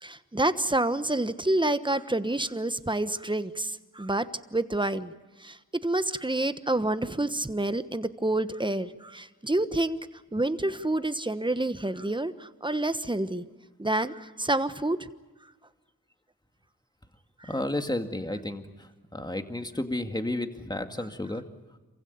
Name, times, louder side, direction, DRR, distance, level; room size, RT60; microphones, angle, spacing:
voice 1, 0.0-5.1 5.4-10.0 10.3-13.4 13.8-15.1 17.4-17.5, right 2 dB, 15° right, 12 dB, 1.2 m, -28 dB
voice 2, 17.5-21.5, left 1 dB, 10° left, 6 dB, 2.1 m, -32 dB
27.5 x 16.0 x 9.9 m, 1.2 s
cardioid pair, 50°, 36 cm